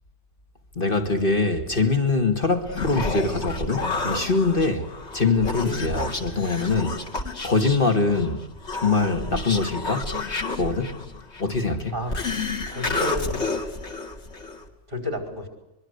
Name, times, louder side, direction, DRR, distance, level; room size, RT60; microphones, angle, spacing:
voice 1, 0.8-4.9 5.1-7.0 7.4-8.4 8.7-10.2 10.6-11.0 11.4-12.0, left 3 dB, 45° left, 2.4 m, -23 dB
Human voice, 2.5-14.7, left 3 dB, 65° left, 2.8 m, -30 dB
voice 2, 12.7-13.5 14.9-15.5, left 2 dB, 45° right, 5.1 m, -31 dB
24.0 x 23.0 x 8.1 m
omnidirectional pair, 1.2 m